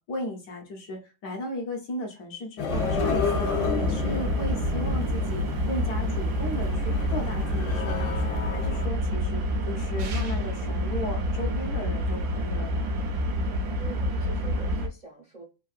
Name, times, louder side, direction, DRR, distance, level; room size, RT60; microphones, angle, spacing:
voice 1, 0.1-12.9, left 1 dB, 65° left, 1 dB, 1.2 m, -36 dB
sound 1, 2.6-8.9, left 6 dB, 85° left, 1.4 m, -32 dB
sound 2, 2.7-14.9, equal, 75° right, 0.8 m, -28 dB
voice 2, 13.8-15.4, right 3 dB, 60° right, -3 dB, 0.4 m, -44 dB
3.5 x 2.2 x 2.4 m, 0.31 s
omnidirectional pair, 2.2 m